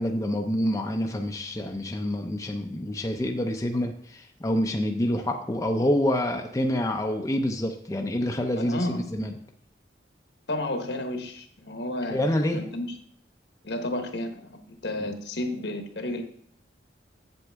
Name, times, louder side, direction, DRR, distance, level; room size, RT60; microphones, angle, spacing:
voice 1, 0.0-9.3 12.1-12.6 15.0-15.1, left 1 dB, 15° left, 3 dB, 0.5 m, -27 dB
voice 2, 8.5-9.1 10.5-12.2 12.5-12.9 13.6-16.2, left 1 dB, 75° left, 5 dB, 1.2 m, -32 dB
8.0 x 7.8 x 3.5 m, 0.64 s
head